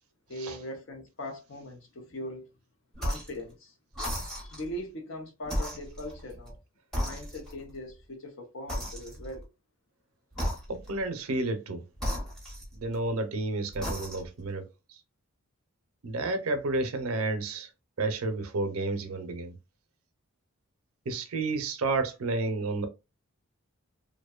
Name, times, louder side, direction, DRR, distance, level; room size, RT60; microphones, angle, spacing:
voice 1, 0.3-2.5 3.0-3.7 4.4-6.6 7.0-9.5, left 1 dB, 60° left, 0.7 m, -40 dB
sound 1, 3.0-3.4 3.9-4.7 5.4-6.6 6.9-7.7 8.7-9.4 10.3-11.0 12.0-13.1 13.7-14.4, equal, ahead, 0.8 m, -35 dB
voice 2, 10.7-11.8 12.7-15.0 16.0-17.7 18.0-19.6 21.1-22.9, right 2 dB, 85° right, 0.6 m, -31 dB
2.6 x 2.1 x 2.3 m
head